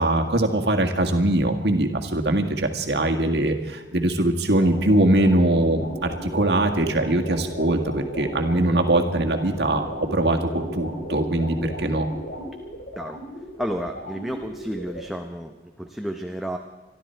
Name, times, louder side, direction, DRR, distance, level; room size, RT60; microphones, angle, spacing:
voice 1, 0.0-12.1, right 1 dB, 65° right, 4 dB, 1.8 m, -22 dB
sound 1, 4.5-15.1, equal, 70° left, 4.6 m, -35 dB
voice 2, 13.6-16.6, equal, ahead, 4 dB, 0.8 m, -31 dB
26.0 x 12.5 x 4.5 m, 1.2 s
head